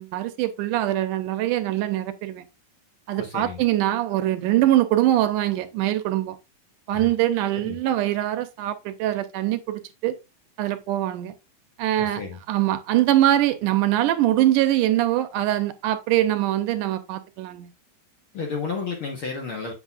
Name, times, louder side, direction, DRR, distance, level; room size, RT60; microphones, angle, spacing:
voice 1, 0.0-2.5 3.1-6.4 6.9-10.1 10.6-11.3 11.8-12.2 12.5-17.7, right 13 dB, 80° right, 2.1 m, -23 dB
voice 2, 3.2-3.6 6.9-7.1 7.5-7.8 12.0-12.4 18.3-19.7, left 5 dB, 55° left, 1.5 m, -32 dB
8.2 x 6.7 x 2.4 m
omnidirectional pair, 3.8 m